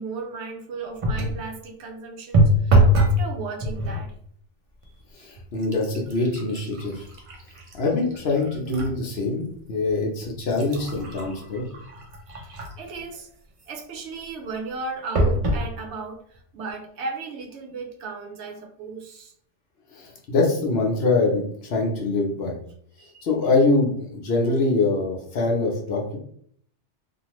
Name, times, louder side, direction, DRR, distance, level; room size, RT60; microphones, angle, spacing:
voice 1, 0.0-4.1 5.2-5.3 12.4-13.3 13.7-19.3 23.0-23.2, right 4 dB, 70° right, 2 dB, 0.8 m, -35 dB
sound 1, 1.0-1.4 2.3-3.2 3.6-4.1 4.8-5.0 5.4-8.9 9.4-9.5 10.2-12.9 15.1-15.7 16.3-16.4 16.7-16.8, right 1 dB, 50° right, 0.4 m, -23 dB
voice 2, 5.2-7.1 7.7-11.7 19.9-22.6 23.2-26.2, left 3 dB, 60° left, 0 dB, 0.9 m, -24 dB
2.7 x 2.5 x 3.0 m, 0.63 s
omnidirectional pair, 1.2 m